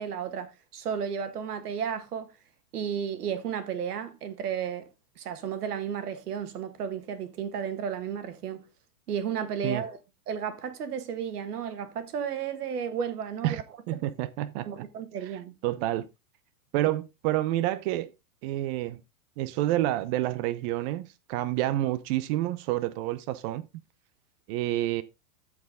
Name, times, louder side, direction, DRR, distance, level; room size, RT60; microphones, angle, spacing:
voice 1, 0.0-2.3 2.7-4.9 5.2-8.6 9.1-10.0 10.3-13.6 14.7-15.6, right 7 dB, 80° right, 1.9 m, -33 dB
voice 2, 13.9-14.8 15.6-16.0 16.7-18.1 18.4-19.0 19.4-23.6 24.5-25.0, right 15 dB, 40° right, 0.6 m, -28 dB
13.5 x 4.8 x 3.6 m
hypercardioid pair, 120°, 46 cm